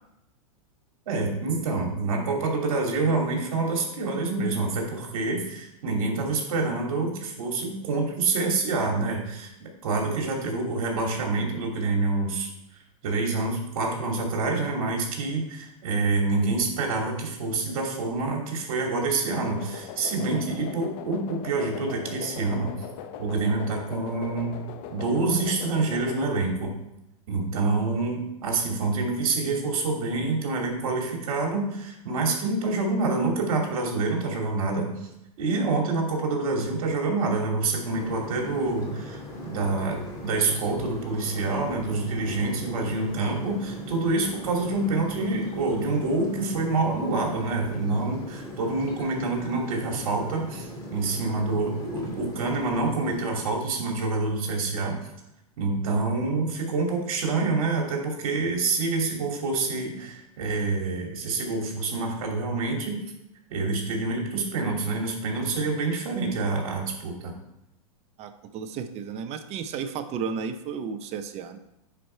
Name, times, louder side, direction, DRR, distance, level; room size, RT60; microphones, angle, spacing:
voice 1, 1.1-12.5 13.0-22.7 23.2-24.6 24.9-26.7 27.3-34.9 35.4-55.0 55.6-63.0 63.5-67.3, right 3 dB, 70° right, 1 dB, 2.7 m, -27 dB
sound 1, 19.4-26.3, left 8 dB, 50° left, 0.9 m, -40 dB
sound 2, 37.9-53.2, left 1 dB, 20° left, 2.5 m, -39 dB
voice 2, 68.2-71.6, right 6 dB, 35° right, 9 dB, 0.8 m, -33 dB
10.0 x 4.8 x 4.5 m, 0.85 s
hypercardioid pair, 120°, 19 cm